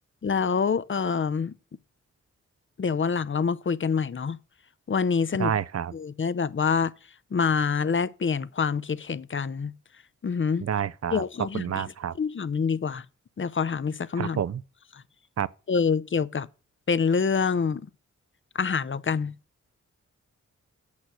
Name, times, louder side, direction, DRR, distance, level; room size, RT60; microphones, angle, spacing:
voice 1, 0.2-1.5 2.8-4.4 4.9-5.5 5.9-6.9 7.3-9.7 10.2-10.6 11.1-11.8 12.2-13.0 13.4-14.4 15.7-16.5 16.9-17.9 18.5-19.3, left 5 dB, 40° left, 0.7 m, -26 dB
voice 2, 5.4-5.9 10.6-11.2 11.5-12.1 14.2-14.6 15.4-15.5, right 8 dB, 55° right, 0.6 m, -28 dB
8.6 x 6.3 x 6.2 m
cardioid pair, 50°, 30 cm